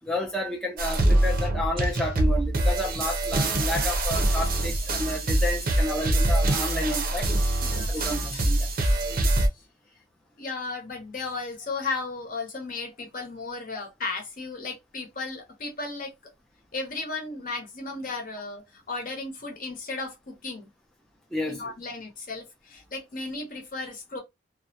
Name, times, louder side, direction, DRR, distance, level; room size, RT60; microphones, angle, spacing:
voice 1, 0.0-7.3 7.9-8.7 21.3-21.7, left 1 dB, 5° left, 0.4 m, -31 dB
sound 1, 0.8-9.5, right 1 dB, 50° right, 0.5 m, -24 dB
voice 2, 7.6-8.5 9.5-9.6 10.4-16.1 16.7-20.7 21.5-24.2, left 3 dB, 50° left, 0.8 m, -35 dB
2.3 x 2.0 x 2.6 m
head